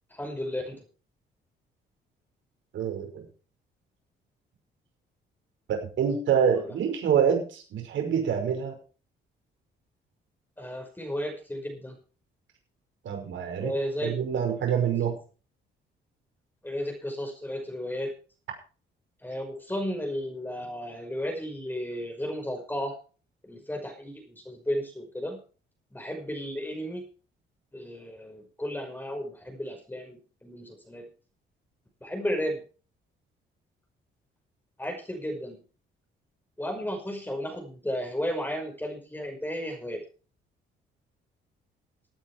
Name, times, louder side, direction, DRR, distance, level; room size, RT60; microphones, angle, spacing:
voice 1, 0.1-0.8 6.7-6.8 10.6-12.0 13.6-14.1 16.6-18.1 19.2-23.0 23.4-25.4 25.9-27.0 27.7-31.1 32.0-32.6 34.8-35.6 36.6-40.0, equal, 10° left, 3 dB, 5.4 m, -33 dB
voice 2, 2.7-3.2 5.7-8.8 13.0-13.7 14.0-15.1, right 7 dB, 70° right, 4 dB, 5.6 m, -26 dB
16.5 x 9.2 x 4.7 m, 0.38 s
cardioid pair, 90°, 20 cm